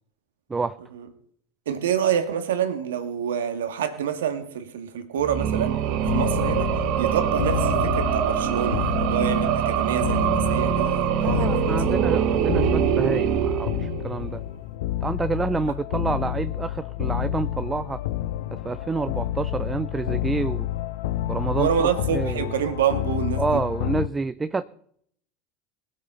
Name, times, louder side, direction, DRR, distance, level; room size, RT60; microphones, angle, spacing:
voice 1, 1.7-5.8 6.1-6.7 7.0-11.8 21.5-23.6, right 8 dB, 80° right, 9 dB, 2.0 m, -27 dB
sound 1, 5.2-14.3, right 9 dB, 60° right, 1.4 m, -24 dB
sound 2, 6.0-24.1, left 14 dB, 70° left, 0.7 m, -29 dB
voice 2, 11.2-14.4 15.0-18.0 18.5-20.7 21.3-22.5 23.4-24.6, right 4 dB, 20° right, 14 dB, 0.6 m, -28 dB
20.0 x 8.6 x 5.6 m, 0.64 s
hypercardioid pair, 85°, 0 cm